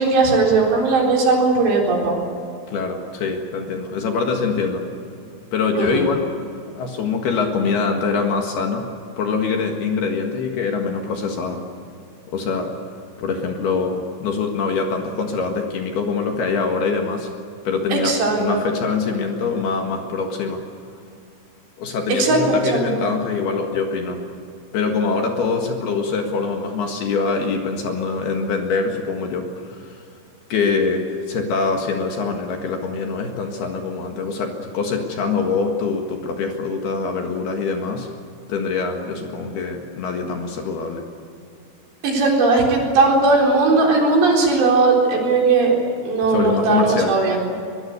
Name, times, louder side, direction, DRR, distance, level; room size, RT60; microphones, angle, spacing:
voice 1, 0.0-2.2 5.8-6.1 17.9-18.6 22.2-23.0 42.0-45.8 46.0-47.4, right 3 dB, 60° right, 0 dB, 6.0 m, -18 dB
voice 2, 2.7-4.8 5.5-6.3 6.8-8.9 9.2-11.6 12.3-12.7 13.2-17.3 17.6-20.6 21.8-24.2 24.7-30.0 30.5-38.1 38.5-41.1 46.3-47.1, left 4 dB, 60° left, 3 dB, 3.3 m, -24 dB
23.0 x 22.5 x 8.3 m, 2.5 s
omnidirectional pair, 5.7 m